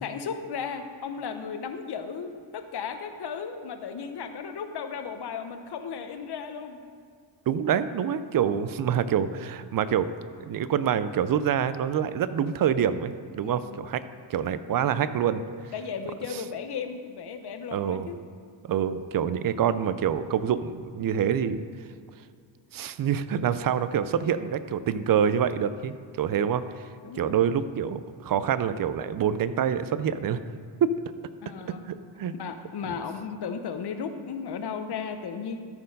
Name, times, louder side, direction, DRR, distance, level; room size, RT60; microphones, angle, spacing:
voice 1, 0.0-6.8 13.4-13.9 15.7-18.2 27.0-27.3 31.4-31.9 32.4-35.6, left 6 dB, 60° left, 7 dB, 0.9 m, -35 dB
voice 2, 7.5-10.1 10.4-14.0 14.3-15.4 17.7-18.1 18.7-21.6 22.7-26.9 27.2-30.4 30.8-30.9 31.8-32.3 32.9-33.0, right 8 dB, 50° right, 13 dB, 0.5 m, -26 dB
13.0 x 4.6 x 5.3 m, 2.2 s
cardioid pair, 105°, 46 cm